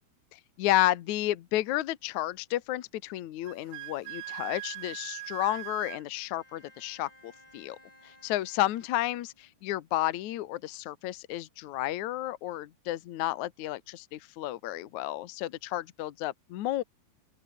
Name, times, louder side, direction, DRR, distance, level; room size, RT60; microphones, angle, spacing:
voice 1, 0.3-7.8 8.0-9.3 9.6-16.8, left 15 dB, 70° left, 1.8 m, -31 dB
Wind instrument woodwind instrument, 3.4-6.0, right 17 dB, 80° right, 2.7 m, -40 dB
Bowed string instrument, 6.1-9.8, left 1 dB, 10° left, 6.9 m, -59 dB
open air
omnidirectional pair, 5.0 m